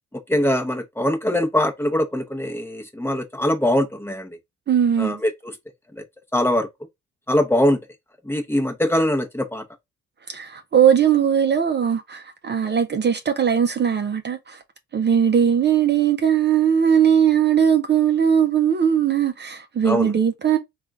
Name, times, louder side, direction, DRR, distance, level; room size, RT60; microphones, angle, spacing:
voice 1, 0.3-4.3 5.0-5.3 6.3-6.7 7.3-7.8 8.3-9.6 19.8-20.1, left 1 dB, 10° left, 0.8 m, -22 dB
voice 2, 4.7-5.2 10.3-14.6 14.9-20.6, right 8 dB, 35° right, 0.6 m, -19 dB
3.6 x 2.4 x 3.5 m
cardioid pair, 105°, 30 cm